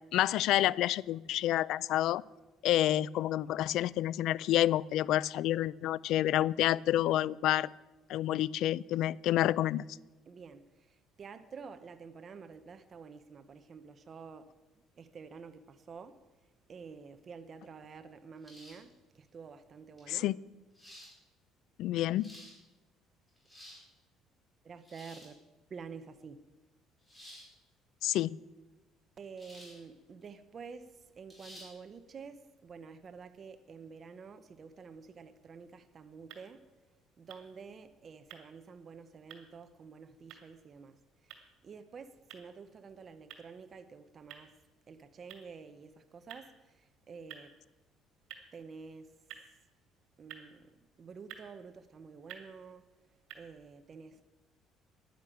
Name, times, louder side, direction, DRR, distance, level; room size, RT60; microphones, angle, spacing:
voice 1, 0.1-2.2 2.6-7.7 8.1-9.9 20.1-20.3 21.8-22.4 28.0-28.4, left 13 dB, 65° left, 0.3 m, -29 dB
voice 2, 10.3-14.5 15.0-16.2 16.7-20.3 24.6-25.4 25.7-26.4 29.2-36.7 37.2-44.6 44.9-47.5 48.5-49.1 50.2-52.9 53.3-54.2, right 5 dB, 30° right, 0.8 m, -49 dB
sound 1, 18.4-18.9 20.0-20.1 20.7-21.1 22.0-22.5 23.3-23.8 24.8-25.3 27.1-27.5 29.4-29.8 30.2-30.3 31.3-31.7, equal, 10° left, 4.7 m, -52 dB
sound 2, 36.0-53.3, right 9 dB, 85° right, 2.4 m, -56 dB
11.0 x 10.5 x 8.7 m
cardioid pair, 150°, 0 cm